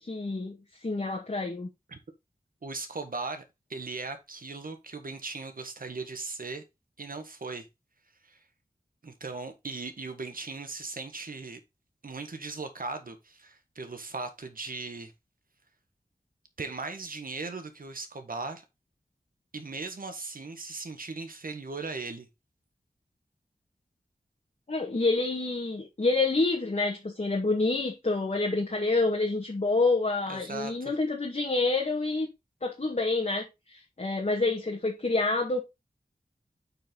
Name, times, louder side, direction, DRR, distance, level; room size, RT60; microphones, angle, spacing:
voice 1, 0.0-1.7 24.7-32.3 32.6-35.6, left 3 dB, 50° left, 1.9 m, -28 dB
voice 2, 2.6-3.4 3.7-6.6 7.0-7.7 8.2-8.4 9.0-11.6 12.0-15.1 16.6-18.6 19.5-22.3 30.3-31.0, right 3 dB, 70° right, 1.6 m, -38 dB
8.8 x 4.6 x 3.9 m
wide cardioid pair, 55°, 15 cm